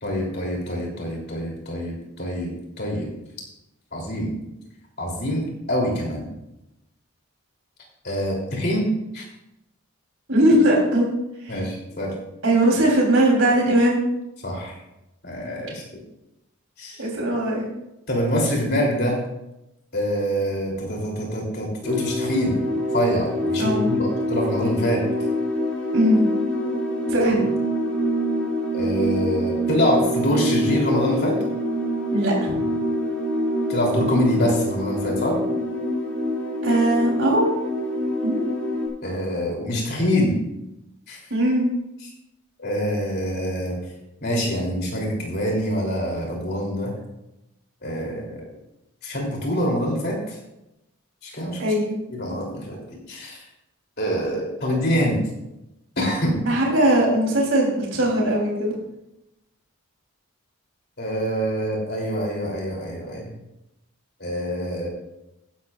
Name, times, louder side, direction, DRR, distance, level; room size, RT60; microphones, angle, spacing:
voice 1, 0.0-2.5 2.8-3.1 3.9-4.4 5.0-6.3 8.0-8.9 9.1-9.2 11.5-12.1 14.4-14.8 15.2-15.8 16.8-17.0 18.1-19.2 19.9-22.6 22.9-25.1 28.7-31.4 33.7-35.4 39.0-40.4 41.1-41.2 42.6-43.8 44.2-46.9 47.8-48.4 49.0-50.4 51.2-51.6 52.1-52.8 53.1-53.4 54.0-55.2 56.0-56.4 61.0-63.3 64.2-64.9, equal, 45° left, -1 dB, 3.2 m, -25 dB
voice 2, 10.3-11.1 11.4-11.5 12.4-14.0 17.0-17.7 23.6-23.9 25.9-26.2 27.1-27.4 32.1-32.6 36.6-37.5 38.2-38.4 41.3-41.7 51.6-52.0 56.5-58.8, right 1 dB, 65° right, -2 dB, 3.4 m, -20 dB
sound 1, 21.8-38.9, equal, 5° left, 4.7 m, -25 dB
15.0 x 11.0 x 2.5 m, 0.90 s
head